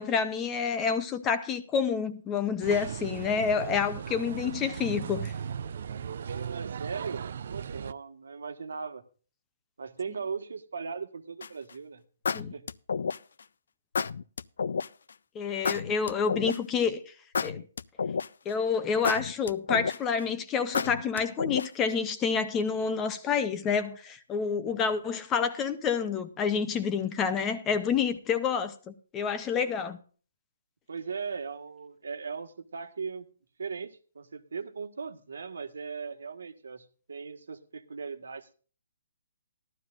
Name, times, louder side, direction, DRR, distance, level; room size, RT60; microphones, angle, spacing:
voice 1, 0.0-5.3 12.3-12.5 15.3-17.0 17.4-17.6 18.5-30.0, left 6 dB, 10° left, 0.6 m, -28 dB
sound 1, 2.6-7.9, right 7 dB, 45° right, 0.4 m, -37 dB
voice 2, 6.2-9.0 9.8-12.0 12.5-12.7 24.8-24.9 30.9-33.2 33.6-38.5, right 5 dB, 85° right, 1.5 m, -38 dB
sound 2, 11.4-11.7 12.3-13.4 13.9-14.9 15.6-16.8 17.3-18.5 19.0-20.2 20.7-21.9, left 5 dB, 65° left, 0.4 m, -30 dB
15.5 x 12.0 x 2.5 m
hypercardioid pair, 175°, 0 cm